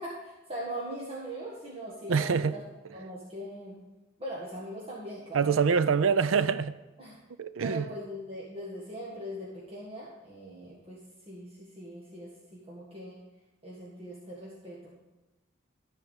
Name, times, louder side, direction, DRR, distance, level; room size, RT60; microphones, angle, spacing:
voice 1, 0.0-2.6 2.9-3.7 4.2-5.6 7.0-7.2 7.6-11.0 11.3-11.5 11.8-13.2 13.6-14.9, right 1 dB, 30° right, 1.7 m, -40 dB
voice 2, 2.1-2.5 5.3-6.8 7.4-7.9, right 6 dB, 80° right, 0.5 m, -25 dB
14.0 x 4.8 x 6.4 m
head